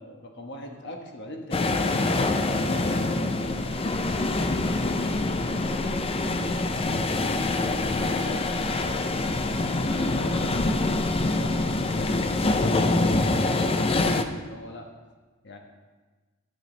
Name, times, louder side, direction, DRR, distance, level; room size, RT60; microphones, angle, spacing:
voice 1, 0.0-3.6 7.4-8.8 9.9-14.9 15.4-15.6, left 1 dB, 55° left, 3 dB, 1.3 m, -42 dB
sound 1, 1.5-14.2, left 2 dB, 25° left, 0.5 m, -25 dB
voice 2, 2.8-3.4 5.3-7.2, right 1 dB, 80° left, -7 dB, 3.3 m, -46 dB
sound 2, 3.4-12.6, equal, 85° right, 1.7 m, -43 dB
10.5 x 9.3 x 3.9 m, 1.3 s
head